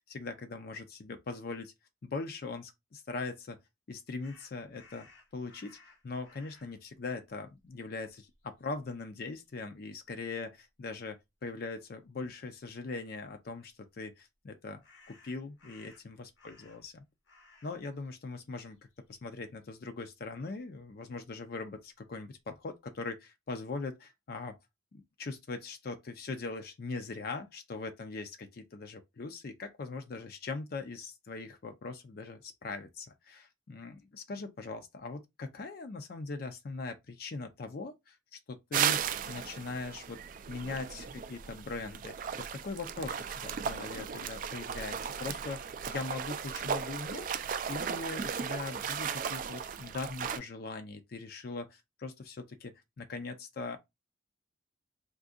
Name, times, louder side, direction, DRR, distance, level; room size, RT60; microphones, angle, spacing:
voice 1, 0.1-1.7 2.0-3.6 3.9-5.8 6.0-17.0 17.6-18.8 19.1-24.6 24.9-47.3 47.7-53.8, left 3 dB, 50° left, 0.4 m, -41 dB
sound 1, 4.2-6.8 7.6-7.7 8.1-9.0 14.8-17.0 17.2-17.8 18.1-19.7, left 3 dB, 80° left, 1.2 m, -60 dB
sound 2, 38.7-50.4, right 7 dB, 45° right, 0.3 m, -36 dB
3.7 x 2.6 x 2.4 m
head